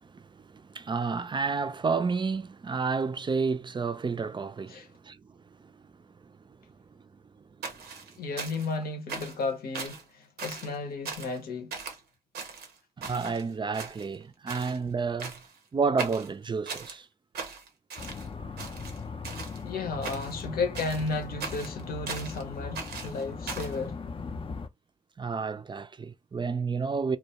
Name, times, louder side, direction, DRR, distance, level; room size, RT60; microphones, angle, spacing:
voice 1, 0.0-5.2 6.2-6.3 13.0-15.4 15.7-17.1 25.2-27.2, right 5 dB, 30° right, 0.4 m, -30 dB
sound 1, 7.6-8.8 9.1-9.4 9.7-10.0 10.4-10.8 11.1-11.4 11.7-12.0 12.3-13.4 13.7-14.2 14.5-14.8 15.2-15.6 16.0-17.0 17.3-18.3 18.6-19.6 20.0-20.4 20.7-22.4 22.7-23.8, right 5 dB, 80° right, 0.6 m, -39 dB
voice 2, 8.2-11.7 19.6-24.0, left 3 dB, 70° left, 0.8 m, -33 dB
sound 2, 18.0-24.7, left 4 dB, 35° left, 0.4 m, -39 dB
2.2 x 2.1 x 2.8 m
supercardioid pair, 40°, 16 cm